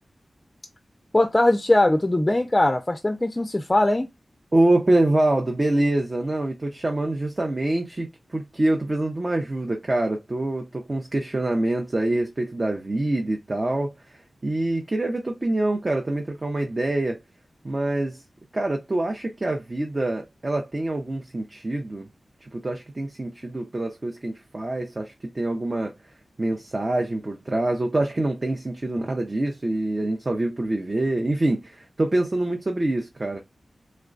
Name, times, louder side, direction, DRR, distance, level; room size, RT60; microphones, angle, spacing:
voice 1, 1.1-4.1, left 1 dB, 20° left, 0.4 m, -20 dB
voice 2, 4.5-17.2 17.6-18.2 18.5-22.1 22.5-25.9 26.4-33.4, right 2 dB, 35° right, 0.6 m, -25 dB
3.2 x 2.2 x 3.7 m
wide cardioid pair, 70°, 0 cm